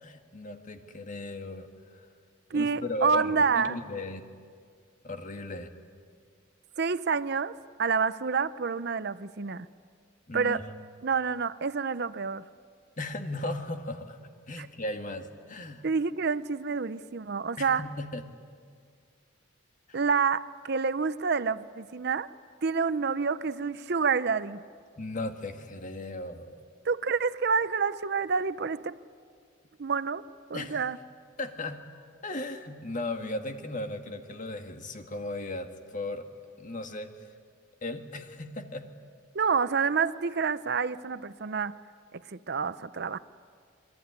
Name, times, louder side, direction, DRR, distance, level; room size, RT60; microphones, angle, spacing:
voice 1, 0.0-2.1 2.5-4.2 5.0-5.7 10.3-10.6 13.0-14.2 14.5-15.9 17.6-18.2 19.9-20.0 25.0-26.6 30.5-30.8 31.4-31.8 32.2-36.3 36.6-37.1 37.8-38.9, left 2 dB, 40° left, 1.8 m, -36 dB
voice 2, 2.5-3.8 6.8-9.7 10.3-10.6 11.0-12.4 14.6-14.7 15.8-17.8 19.9-22.3 22.6-24.6 26.8-29.0 29.8-31.0 39.3-41.8 42.1-43.2, right 5 dB, 55° right, 0.6 m, -28 dB
27.0 x 22.0 x 9.6 m
head